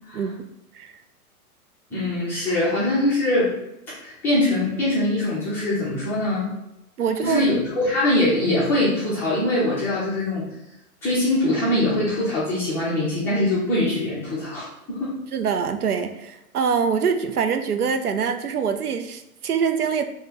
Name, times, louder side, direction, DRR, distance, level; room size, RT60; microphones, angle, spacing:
voice 1, 1.9-3.5 4.0-6.5 7.2-10.5 11.0-15.2, left 1 dB, 5° left, -9 dB, 0.3 m, -22 dB
voice 2, 7.0-7.5 15.3-20.0, right 6 dB, 90° right, 8 dB, 0.5 m, -24 dB
3.0 x 2.7 x 3.7 m, 0.87 s
figure-of-eight pair, 110°, 44 cm